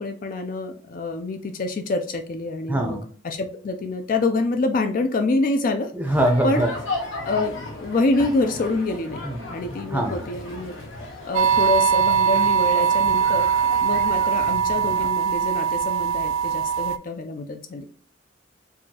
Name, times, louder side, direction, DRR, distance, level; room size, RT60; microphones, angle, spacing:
voice 1, 0.0-3.0 3.2-5.9 6.4-6.6 7.2-9.2 9.5-10.8 11.2-13.5 13.8-17.8, left 2 dB, 45° left, 6 dB, 0.4 m, -26 dB
voice 2, 2.7-3.1 5.9-6.7 9.2-10.2, right 1 dB, 10° right, 3 dB, 0.6 m, -24 dB
sound 1, 6.0-15.1, left 2 dB, 75° left, 0.9 m, -35 dB
sound 2, 11.3-17.0, right 8 dB, 90° right, 0.3 m, -21 dB
4.6 x 2.6 x 2.7 m, 0.41 s
head